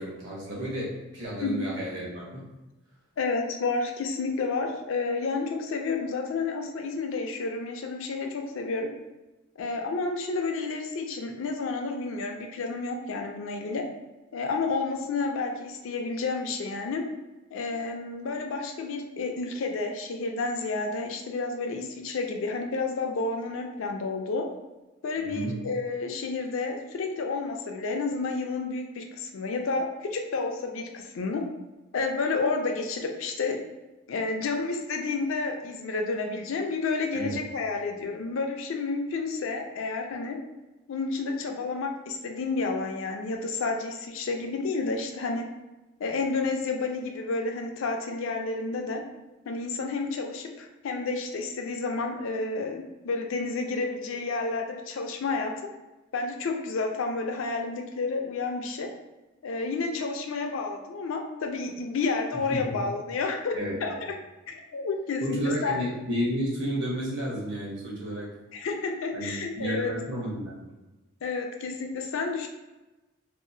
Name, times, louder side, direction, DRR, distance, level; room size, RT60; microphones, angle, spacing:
voice 1, 0.0-2.4 25.2-25.7 37.1-37.4 62.5-62.7 63.5-64.0 65.2-68.3 69.1-70.7, right 1 dB, 60° right, -5 dB, 1.0 m, -32 dB
voice 2, 3.2-8.9 9.6-13.8 14.3-17.0 17.5-24.5 25.0-31.4 31.9-33.6 34.1-40.4 40.9-45.5 46.0-49.0 49.5-55.5 56.1-58.9 59.4-63.5 63.8-63.9 64.5-65.8 68.5-69.9 71.2-72.5, left 3 dB, 70° left, 3 dB, 0.4 m, -30 dB
2.7 x 2.3 x 2.6 m, 1.1 s
head